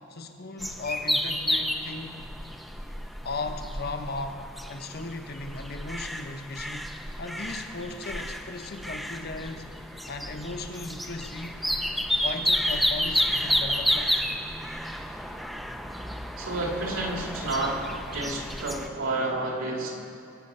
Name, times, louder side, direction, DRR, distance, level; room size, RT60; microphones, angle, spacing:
voice 1, 0.1-2.2 3.2-4.4 4.7-6.9 7.2-9.7 10.1-11.6 12.2-14.1, left 3 dB, 45° left, 6 dB, 1.0 m, -37 dB
sound 1, 0.6-18.9, equal, ahead, 0.6 m, -31 dB
voice 2, 16.4-19.9, right 2 dB, 70° right, 0 dB, 2.4 m, -30 dB
23.5 x 8.3 x 5.5 m, 2.6 s
head